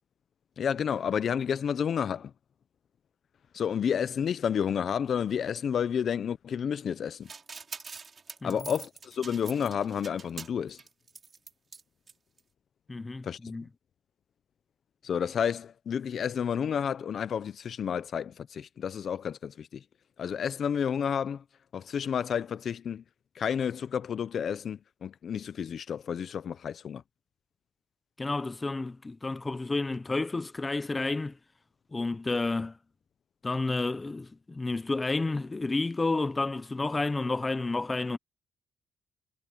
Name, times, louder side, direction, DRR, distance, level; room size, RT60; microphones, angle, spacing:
voice 1, 0.6-2.3 3.5-7.3 8.4-10.8 13.2-13.4 15.0-19.8 20.2-21.4 21.7-23.0 23.4-27.0, left 8 dB, 50° left, 0.6 m, -30 dB
sound 1, 7.3-11.8 12.1-12.2 12.4-12.5, right 5 dB, 35° right, 3.9 m, -44 dB
voice 2, 12.9-13.6 28.2-31.3 31.9-32.8 33.4-38.2, left 3 dB, 20° left, 0.8 m, -30 dB
cardioid pair, 125°, 0 cm